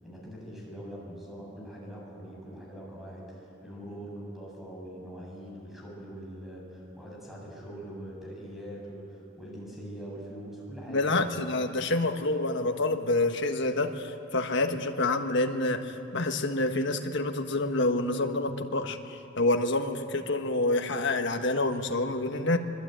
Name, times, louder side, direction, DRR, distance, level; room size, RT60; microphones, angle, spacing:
voice 1, 0.0-11.4, equal, ahead, -4 dB, 7.6 m, -43 dB
voice 2, 10.9-22.6, left 2 dB, 65° left, 5 dB, 1.6 m, -27 dB
25.0 x 22.5 x 9.3 m, 2.8 s
head